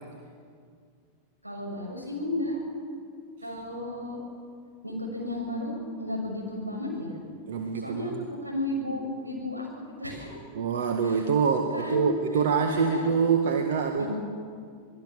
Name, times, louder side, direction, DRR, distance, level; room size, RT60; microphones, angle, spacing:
voice 1, 1.4-2.6 3.4-4.2 4.8-7.1 7.7-9.7 10.0-10.4 11.0-11.1 11.4-12.1 12.6-13.1 14.0-14.1, left 1 dB, 85° right, 0 dB, 7.2 m, -33 dB
voice 2, 7.5-8.3 10.5-14.0, right 6 dB, 55° right, 5 dB, 1.8 m, -25 dB
27.5 x 20.5 x 7.2 m, 2.2 s
figure-of-eight pair, 90°, 0 cm